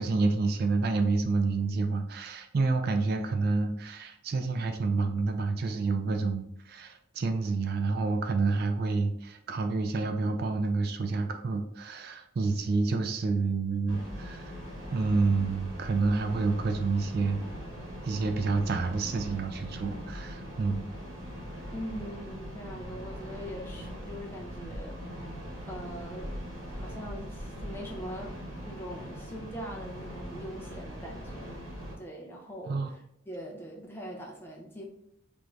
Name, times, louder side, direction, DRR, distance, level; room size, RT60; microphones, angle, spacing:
voice 1, 0.0-14.5 14.9-17.4 18.0-20.8 24.7-24.8 32.7-32.9, right 3 dB, 50° right, 6 dB, 0.3 m, -28 dB
sound 1, 13.9-31.9, equal, 80° right, 1.2 m, -41 dB
voice 2, 21.7-25.0 25.7-26.4 26.7-31.6 32.0-33.0 33.3-34.8, equal, 10° left, -1 dB, 0.5 m, -42 dB
3.4 x 2.5 x 3.1 m, 0.72 s
head